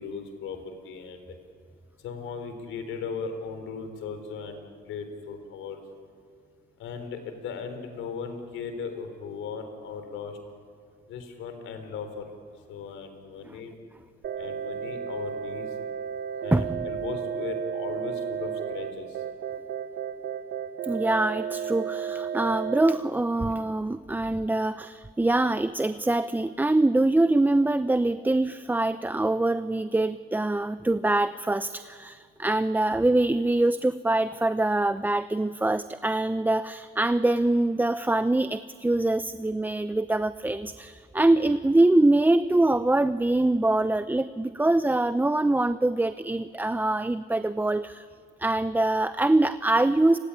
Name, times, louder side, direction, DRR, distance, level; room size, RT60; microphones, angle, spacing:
voice 1, 0.0-1.4 2.0-5.8 6.8-10.4 11.1-12.3 12.7-13.8 14.4-15.8 16.4-19.2, left 5 dB, 85° left, 8 dB, 4.0 m, -37 dB
sound 1, 14.2-23.0, right 8 dB, 70° right, 1.3 m, -33 dB
voice 2, 16.5-16.9 20.8-48.1 48.4-50.2, right 2 dB, 10° right, 13 dB, 0.7 m, -24 dB
30.0 x 19.0 x 10.0 m, 2.1 s
cardioid pair, 90°, 20 cm